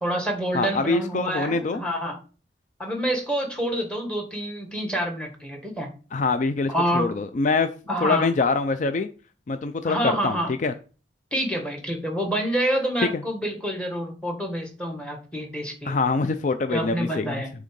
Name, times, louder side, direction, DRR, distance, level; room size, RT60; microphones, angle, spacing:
voice 1, 0.0-2.2 2.8-5.9 6.7-7.1 7.9-8.3 9.8-10.5 11.3-15.9 16.7-17.5, equal, 5° left, 3 dB, 1.5 m, -27 dB
voice 2, 0.5-1.8 6.1-7.7 8.0-9.1 9.5-10.7 13.1-13.2 15.9-17.4, left 4 dB, 45° left, 9 dB, 0.4 m, -24 dB
6.5 x 3.8 x 5.2 m, 0.37 s
head